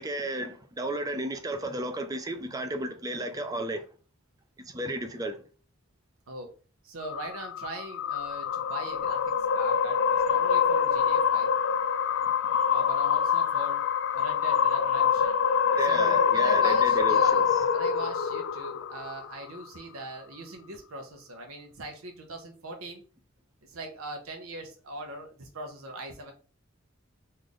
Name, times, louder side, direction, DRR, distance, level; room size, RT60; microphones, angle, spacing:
voice 1, 0.0-3.8 4.6-5.4 15.7-17.4, right 1 dB, 15° right, 0.4 m, -33 dB
voice 2, 6.8-9.2 9.5-11.5 12.7-13.8 14.1-15.4 15.8-23.0 23.6-26.3, right 1 dB, 90° right, 0.7 m, -41 dB
sound 1, 7.0-19.5, left 7 dB, 65° left, 0.3 m, -25 dB
3.2 x 2.5 x 3.8 m
head